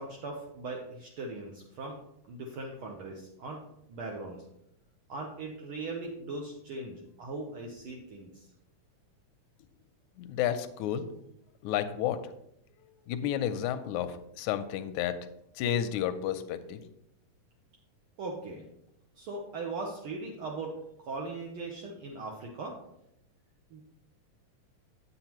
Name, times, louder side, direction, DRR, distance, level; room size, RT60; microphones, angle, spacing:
voice 1, 0.0-2.0 2.3-3.6 3.9-4.4 5.1-8.5 18.2-18.7 19.2-20.7 21.0-22.8 23.7-23.8, right 3 dB, 75° right, 0 dB, 1.2 m, -39 dB
voice 2, 10.2-11.1 11.6-12.2 13.1-15.2 15.6-16.8, left 10 dB, 80° left, 10 dB, 1.8 m, -31 dB
9.0 x 8.3 x 3.0 m, 0.79 s
omnidirectional pair, 3.6 m